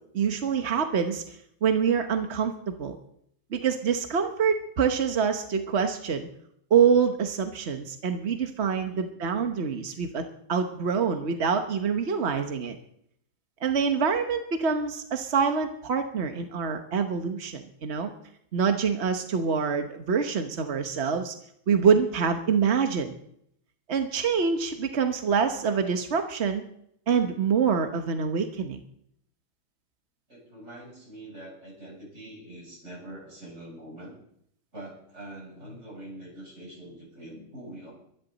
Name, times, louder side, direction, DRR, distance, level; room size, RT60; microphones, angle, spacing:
voice 1, 0.1-3.0 3.5-6.3 6.7-10.2 10.5-12.8 13.6-18.1 18.5-21.3 21.7-23.1 23.9-26.6 27.1-28.8, right 6 dB, 45° right, 6 dB, 0.9 m, -25 dB
voice 2, 30.3-34.1 34.7-37.9, right 1 dB, 30° right, -1 dB, 7.4 m, -44 dB
23.5 x 11.5 x 4.0 m, 0.70 s
omnidirectional pair, 2.3 m